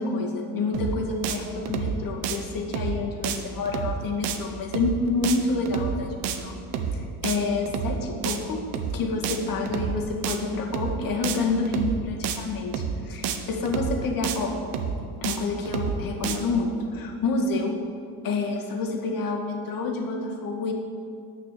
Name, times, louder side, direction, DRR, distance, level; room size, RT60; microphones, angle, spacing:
voice 1, 0.0-6.6 6.9-14.6 15.2-17.8 18.2-20.7, left 3 dB, 50° left, 1 dB, 2.0 m, -28 dB
sound 1, 0.7-1.0 1.2-1.4 1.6-2.0 2.2-2.4 2.7-3.0 3.2-3.4 3.6-4.0 4.2-4.4 4.7-5.0 5.2-5.4 5.6-6.0 6.2-6.4 6.7-7.0 7.2-7.4 7.6-8.0 8.2-8.4 8.7-9.0 9.2-9.4 9.6-10.0 10.2-10.4 10.7-11.0 11.2-11.4 11.6-12.0 12.2-12.4 12.7-13.0 13.2-13.4 13.6-14.0 14.2-14.4 14.7-15.0 15.2-15.4 15.6-16.0 16.2-16.4, right 8 dB, 65° right, 1.2 m, -28 dB
9.6 x 9.5 x 6.8 m, 2.4 s
cardioid pair, 130°, 44 cm